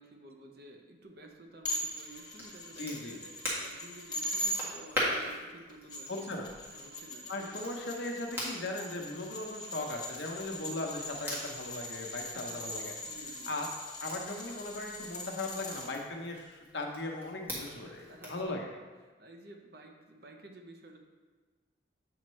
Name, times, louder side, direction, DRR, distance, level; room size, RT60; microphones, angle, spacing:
voice 1, 0.0-6.4 6.7-7.6 12.2-12.6 13.0-13.5 17.8-21.0, right 2 dB, 50° right, 3 dB, 0.8 m, -53 dB
sound 1, 1.6-4.6 5.7-15.9, left 1 dB, 20° left, 0.9 m, -41 dB
Crackle, 1.8-18.5, equal, 10° right, 1.5 m, -43 dB
voice 2, 2.8-3.2 6.1-6.5 7.3-12.9 13.5-13.6 14.0-18.7, left 2 dB, 60° left, 1 dB, 0.9 m, -38 dB
7.9 x 5.5 x 3.1 m, 1.4 s
head